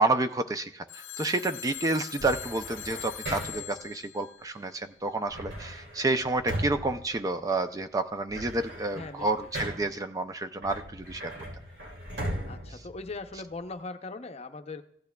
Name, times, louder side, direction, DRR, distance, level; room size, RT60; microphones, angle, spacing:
voice 1, 0.0-11.3, right 2 dB, 20° right, 8 dB, 0.4 m, -29 dB
Telephone, 0.9-5.1, left 13 dB, 80° left, 0.5 m, -42 dB
sound 1, 2.2-3.8 5.3-7.8 8.1-10.1 10.6-13.6, right 1 dB, 85° right, 3.6 m, -38 dB
voice 2, 8.9-9.3 12.5-14.8, left 3 dB, 35° left, 7 dB, 0.6 m, -40 dB
16.0 x 10.5 x 2.2 m, 0.71 s
head